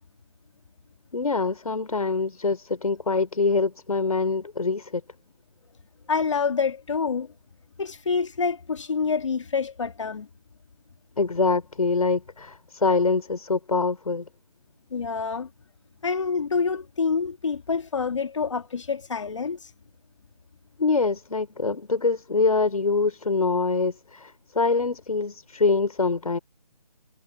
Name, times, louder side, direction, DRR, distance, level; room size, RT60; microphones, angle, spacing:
voice 1, 1.1-5.0 11.2-14.2 20.8-26.4, left 4 dB, 65° left, 5.8 m, -24 dB
voice 2, 6.1-7.3 7.8-10.3 14.9-15.5 16.0-19.6, left 5 dB, 50° left, 2.4 m, -27 dB
figure-of-eight pair, 165°, 20 cm